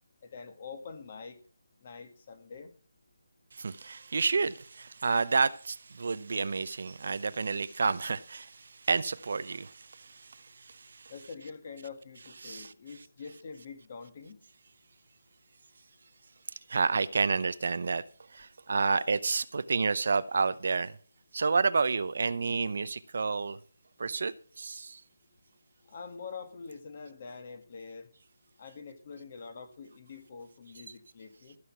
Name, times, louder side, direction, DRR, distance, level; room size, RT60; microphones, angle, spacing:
voice 1, 0.2-1.4 1.8-2.7 11.1-14.4 25.8-28.1 28.6-31.6, left 5 dB, 35° left, 1.6 m, -45 dB
voice 2, 3.5-11.1 12.4-12.7 16.7-18.0 18.3-21.0 21.3-23.6 24.0-25.0, right 4 dB, 55° right, 0.7 m, -30 dB
14.5 x 6.3 x 6.0 m
hypercardioid pair, 170°, 0 cm